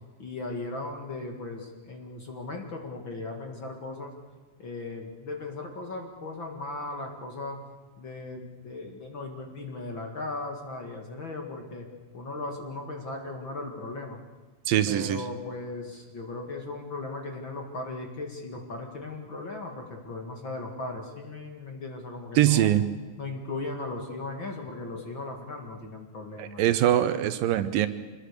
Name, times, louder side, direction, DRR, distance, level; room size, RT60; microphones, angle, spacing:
voice 1, 0.2-4.1 4.6-7.6 8.0-11.9 12.1-14.2 14.9-22.7 23.2-26.6, left 2 dB, 40° left, 2 dB, 2.3 m, -37 dB
voice 2, 14.7-15.2 22.4-22.8 26.4-27.9, right 12 dB, 75° right, 12 dB, 2.5 m, -23 dB
25.5 x 21.5 x 6.7 m, 1.3 s
omnidirectional pair, 4.2 m